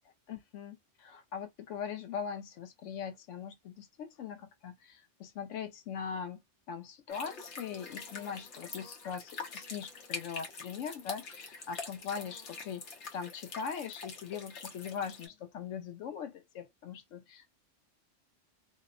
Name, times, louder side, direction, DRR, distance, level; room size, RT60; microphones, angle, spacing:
voice 1, 0.3-6.4 6.7-12.9 13.1-17.5, left 7 dB, 90° left, 1.0 m, -41 dB
sound 1, 7.1-15.3, left 4 dB, 70° left, 1.0 m, -45 dB
2.7 x 2.0 x 2.4 m
omnidirectional pair, 1.3 m